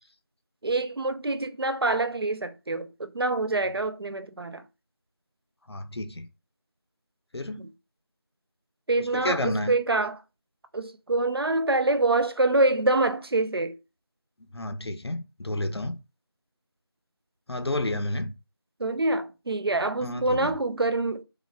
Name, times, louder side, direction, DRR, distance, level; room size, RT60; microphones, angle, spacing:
voice 1, 0.6-4.6 7.6-7.7 8.9-10.2 10.7-13.8 18.8-21.2, right 2 dB, 70° right, 0.4 m, -26 dB
voice 2, 5.7-6.3 7.3-7.7 9.1-9.7 14.5-16.0 17.5-18.3 20.0-20.5, left 1 dB, 85° left, 0.6 m, -30 dB
3.1 x 2.3 x 2.2 m
figure-of-eight pair, 180°, 13 cm